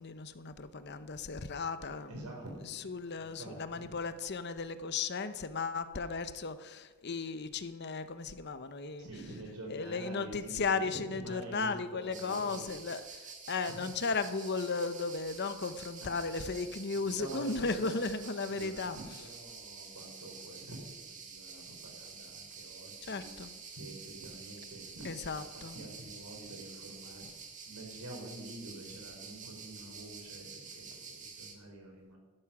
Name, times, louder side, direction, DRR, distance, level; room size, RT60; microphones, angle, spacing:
voice 1, 0.0-2.1 2.8-9.1 9.7-13.0 13.5-19.0 23.1-23.6 25.0-25.8, left 4 dB, 50° left, 11 dB, 0.8 m, -35 dB
voice 2, 2.1-3.9 9.0-12.8 13.7-13.9 16.0-16.1 16.4-16.5 17.0-18.1 18.5-23.3 23.7-27.3 27.7-32.2, right 2 dB, 85° right, 0 dB, 4.5 m, -47 dB
sound 1, 12.1-31.5, right 5 dB, 35° right, 1.8 m, -49 dB
12.0 x 12.0 x 6.1 m, 1.3 s
head